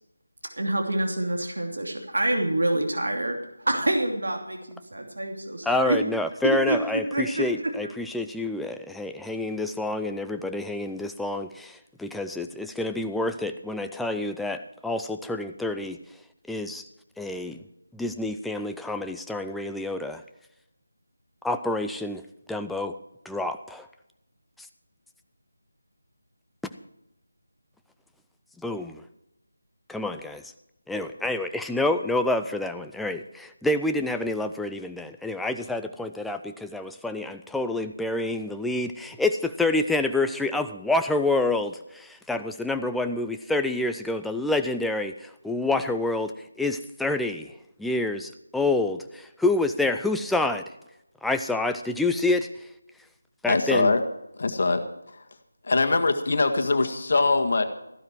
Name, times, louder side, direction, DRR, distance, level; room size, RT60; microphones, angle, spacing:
voice 1, 0.5-6.0 6.4-7.4 7.8-7.9, right 1 dB, 70° right, 2 dB, 2.7 m, -27 dB
voice 2, 5.7-16.0 16.5-16.8 17.2-17.6 17.9-20.2 21.4-23.0 23.2-23.9 24.6-24.7 28.6-29.0 29.9-30.5 30.9-50.6 51.2-52.7 53.4-53.9, left 2 dB, ahead, 7 dB, 0.5 m, -28 dB
voice 3, 53.4-54.0 54.4-54.8 55.7-57.6, left 3 dB, 50° left, 7 dB, 1.7 m, -22 dB
15.0 x 12.0 x 4.6 m, 0.86 s
figure-of-eight pair, 160°, 0 cm